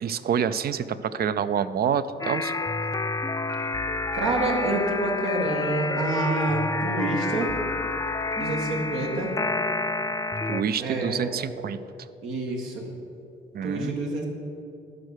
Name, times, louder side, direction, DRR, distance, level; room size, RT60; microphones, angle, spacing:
voice 1, 0.0-2.5 10.5-11.8 13.5-14.0, right 8 dB, 50° right, 14 dB, 0.5 m, -27 dB
sound 1, 2.2-10.6, left 3 dB, 15° left, 0.4 m, -29 dB
voice 2, 4.1-7.5 8.4-9.3 10.8-11.4 12.2-12.8 13.6-14.3, right 2 dB, 80° right, -1 dB, 1.7 m, -27 dB
11.0 x 5.7 x 6.5 m, 2.6 s
cardioid pair, 90°, 20 cm